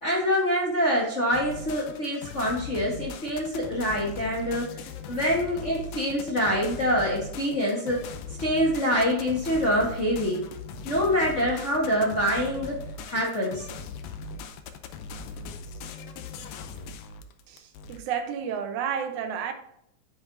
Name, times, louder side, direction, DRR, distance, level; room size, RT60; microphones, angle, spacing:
voice 1, 0.0-4.7 5.1-8.0 8.4-10.4 10.8-12.7 13.1-13.6, equal, 35° left, -4 dB, 1.2 m, -25 dB
sound 1, 1.3-18.0, left 4 dB, 80° left, 2.0 m, -39 dB
voice 2, 17.5-19.5, right 7 dB, 90° right, 6 dB, 2.4 m, -31 dB
7.7 x 7.5 x 2.7 m, 0.73 s
omnidirectional pair, 3.3 m